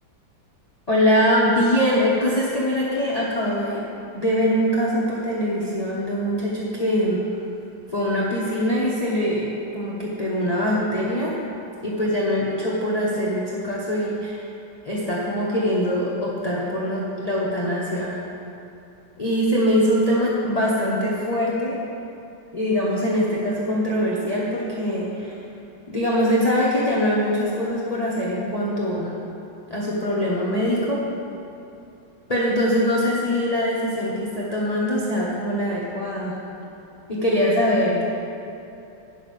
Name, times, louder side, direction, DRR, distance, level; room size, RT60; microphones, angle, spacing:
voice 1, 0.9-3.8 4.1-7.2 7.9-11.4 11.8-14.5 14.8-18.2 19.2-21.8 22.5-25.3 25.9-29.1 29.7-31.0 32.3-36.4 37.1-38.1, equal, 25° left, -6 dB, 0.9 m, -23 dB
9.5 x 5.7 x 6.6 m, 2.9 s
omnidirectional pair, 2.0 m